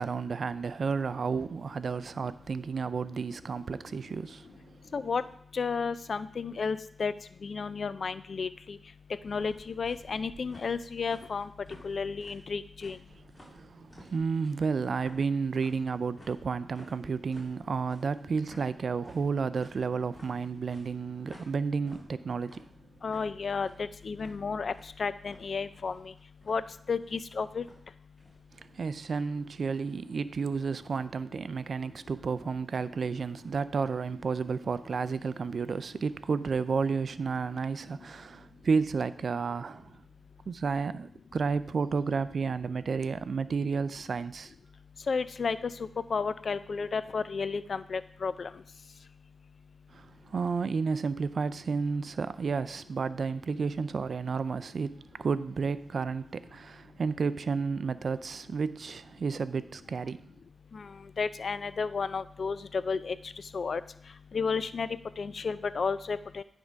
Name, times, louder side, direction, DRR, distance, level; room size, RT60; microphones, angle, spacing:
voice 1, 0.0-4.7 13.5-22.6 28.6-40.0 40.5-44.5 49.9-60.3, right 5 dB, 60° right, 0.3 m, -31 dB
voice 2, 5.5-7.1 7.4-8.8 9.2-11.5 11.8-13.0 23.0-24.7 25.0-26.1 26.5-26.6 26.9-27.6 45.1-45.6 46.1-48.5 60.7-60.9 61.2-63.2 63.5-63.8 64.3-64.9 65.2-66.4, left 5 dB, 60° left, 0.4 m, -32 dB
sound 1, 9.2-28.4, left 1 dB, 20° left, 3.4 m, -55 dB
9.6 x 3.6 x 5.0 m
cardioid pair, 75°, 0 cm